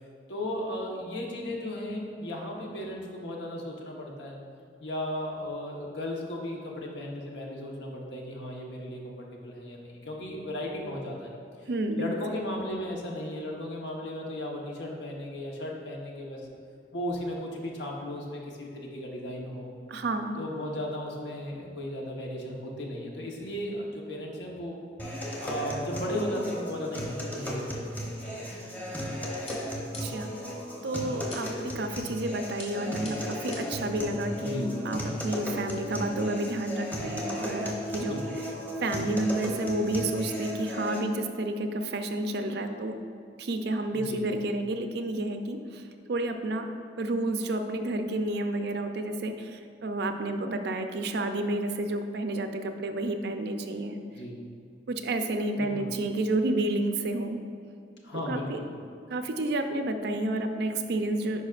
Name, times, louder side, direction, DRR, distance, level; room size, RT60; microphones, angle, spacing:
voice 1, 0.3-4.4 4.8-11.3 11.6-11.7 12.0-16.4 16.9-19.7 20.4-24.8 25.0-29.1 34.4-34.7 38.1-38.4 43.9-44.2 54.1-54.4 55.6-55.9 58.0-58.6, left 1 dB, 85° left, -1 dB, 1.1 m, -36 dB
voice 2, 11.7-12.1 19.9-20.4 30.0-30.3 30.8-38.2 38.8-42.9 43.4-46.7 47.0-54.0 54.9-57.4 58.3-58.6 59.1-61.4, right 2 dB, 65° right, 7 dB, 0.5 m, -30 dB
sound 1, 25.0-41.0, equal, 10° left, 0.8 m, -35 dB
sound 2, 29.5-30.4 31.3-31.7 32.6-33.9, left 2 dB, 35° left, 1.4 m, -45 dB
10.0 x 4.8 x 2.5 m, 2.4 s
head